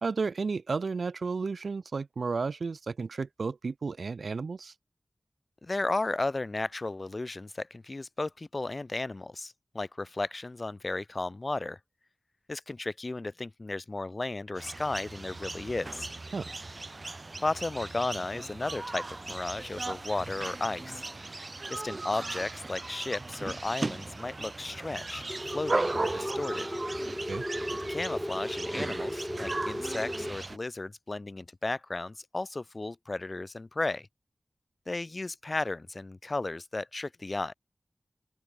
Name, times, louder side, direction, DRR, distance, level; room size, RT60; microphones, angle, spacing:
voice 1, 0.0-4.7 16.3-16.5 27.3-27.4, right 4 dB, 85° right, 1.2 m, -32 dB
voice 2, 5.6-11.8 12.5-16.1 17.4-21.1 21.7-26.7 27.7-34.1 34.9-37.5, left 2 dB, 40° left, 3.4 m, -34 dB
sound 1, 14.6-30.6, right 2 dB, 45° right, 5.3 m, -37 dB
sound 2, 25.3-30.3, equal, 10° left, 1.7 m, -36 dB
open air
wide cardioid pair, 75°, 0 cm